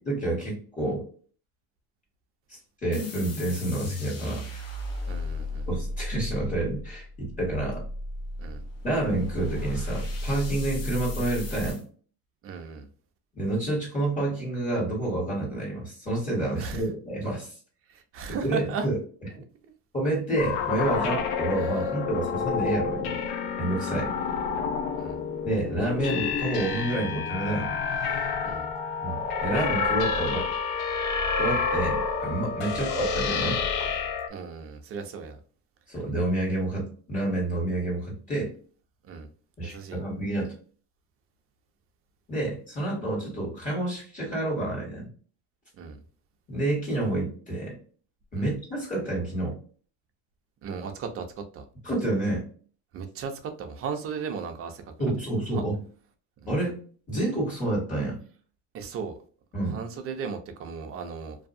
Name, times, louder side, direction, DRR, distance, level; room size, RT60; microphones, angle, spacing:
voice 1, 0.0-1.0 2.5-4.4 5.7-7.8 8.8-11.8 13.3-17.5 18.4-19.0 19.9-23.2 23.6-24.2 25.4-27.7 29.0-30.5 31.4-33.6 35.9-38.5 39.6-40.5 42.3-45.1 46.5-47.8 48.3-49.6 51.8-52.4 55.0-55.8 56.5-56.8 57.1-58.2 59.5-59.8, right 1 dB, 20° left, 1.5 m, -29 dB
sound 1, 2.9-11.8, left 1 dB, 40° left, 1.0 m, -34 dB
voice 2, 5.1-5.7 8.4-8.6 12.4-12.9 16.6-16.8 17.9-18.9 20.9-21.1 23.8-24.1 25.0-25.2 28.4-28.7 32.6-32.8 34.3-35.4 39.1-39.3 39.6-40.0 45.8-46.0 48.4-48.5 50.6-51.6 52.9-54.8 55.5-55.6 56.4-56.5 58.7-59.2 59.7-61.4, right 5 dB, 40° right, 0.6 m, -36 dB
sound 2, 20.4-34.3, left 5 dB, 85° left, 0.7 m, -29 dB
2.7 x 2.3 x 2.5 m
cardioid pair, 125°, 37 cm